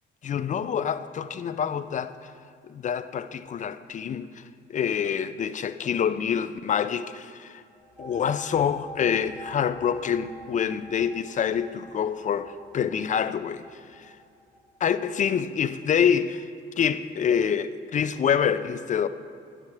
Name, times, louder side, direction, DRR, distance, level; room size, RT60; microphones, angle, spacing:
voice 1, 0.2-2.3 2.6-4.3 4.7-7.6 8.0-13.6 14.0-14.1 14.8-16.4 16.8-19.1, left 8 dB, 40° left, 0.4 m, -26 dB
sound 1, 7.8-15.2, right 1 dB, ahead, 1.0 m, -47 dB
9.5 x 4.9 x 5.9 m
cardioid pair, 90°, 20 cm